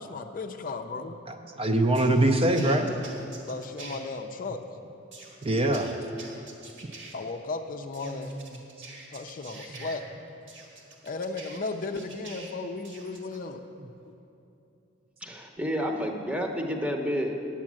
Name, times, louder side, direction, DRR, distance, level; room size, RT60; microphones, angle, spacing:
voice 1, 0.0-1.2 3.5-4.6 7.1-8.4 9.1-10.0 11.0-13.6, left 3 dB, 45° left, 6 dB, 0.5 m, -35 dB
voice 2, 1.3-2.9 5.4-5.9 8.2-8.4, right 1 dB, 30° right, 5 dB, 0.6 m, -23 dB
sound 1, 1.9-4.0 5.1-7.1 7.9-10.0 10.5-12.5 12.8-13.4, right 3 dB, 65° right, 1.7 m, -45 dB
voice 3, 15.2-17.3, equal, 5° right, 2 dB, 0.9 m, -30 dB
9.6 x 7.2 x 7.4 m, 2.7 s
head